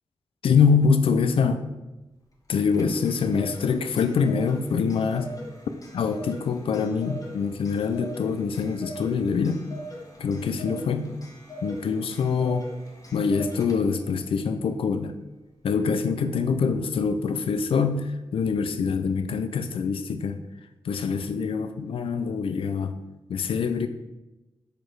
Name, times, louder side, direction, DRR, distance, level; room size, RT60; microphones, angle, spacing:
voice 1, 0.4-1.6 2.5-5.3 5.9-9.6 10.2-11.1 11.6-12.7 13.1-15.2 15.6-20.4 20.8-23.0 23.3-23.9, left 5 dB, 80° left, 10 dB, 0.4 m, -24 dB
Clock, 2.5-14.1, right 1 dB, 40° left, 1.3 m, -42 dB
5.1 x 4.3 x 4.5 m, 1.1 s
cardioid pair, 55°, 9 cm